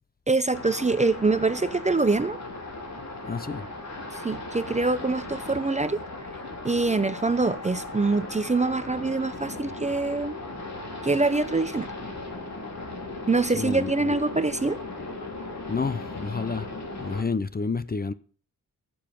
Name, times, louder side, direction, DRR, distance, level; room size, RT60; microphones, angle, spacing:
voice 1, 0.3-2.4 4.1-6.0 6.6-10.4 11.0-11.9 13.3-14.8, right 3 dB, 20° right, 0.5 m, -24 dB
sound 1, 0.5-17.2, left 2 dB, 50° left, 3.1 m, -37 dB
voice 2, 3.3-3.7 13.5-14.2 15.7-16.7 17.0-18.1, left 4 dB, 25° left, 0.5 m, -29 dB
14.5 x 7.1 x 5.8 m
wide cardioid pair, 160°, 35 cm